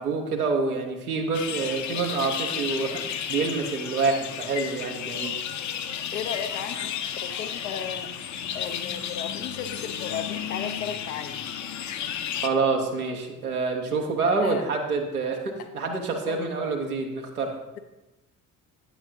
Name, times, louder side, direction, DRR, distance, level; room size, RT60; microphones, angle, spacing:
voice 1, 0.0-3.0 3.3-5.4 12.4-17.6, right 4 dB, 85° right, 1 dB, 0.9 m, -27 dB
sound 1, 1.3-12.5, left 8 dB, 40° left, 0.6 m, -33 dB
voice 2, 6.1-6.9 7.2-8.1 8.5-11.4 14.3-14.6 15.6-15.7 16.2-16.5, left 8 dB, 80° left, 7 dB, 0.7 m, -35 dB
8.8 x 8.0 x 2.7 m, 1.0 s
figure-of-eight pair, 40°, 43 cm